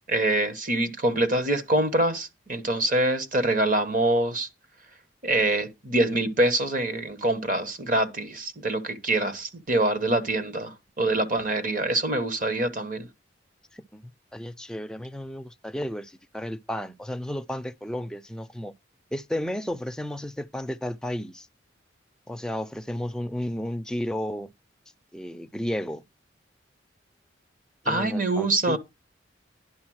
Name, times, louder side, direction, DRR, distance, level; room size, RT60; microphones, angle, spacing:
voice 1, 0.1-4.5 5.2-13.1 27.9-28.8, right 2 dB, 45° right, 1.1 m, -25 dB
voice 2, 13.7-18.7 19.1-21.5 22.3-24.5 25.1-26.0 27.8-28.8, left 1 dB, 5° left, 0.4 m, -33 dB
10.5 x 3.8 x 6.3 m
head